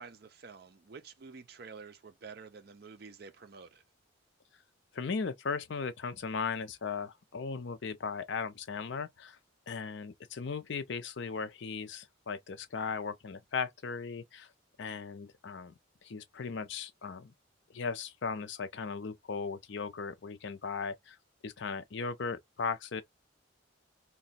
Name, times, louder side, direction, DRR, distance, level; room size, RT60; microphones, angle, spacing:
voice 1, 0.0-3.8, right 5 dB, 50° right, 0.5 m, -49 dB
voice 2, 4.9-9.4 9.7-14.5 14.8-15.7 16.0-17.3 17.7-21.2 21.4-23.0, left 5 dB, 60° left, 0.5 m, -37 dB
2.9 x 2.2 x 4.0 m
head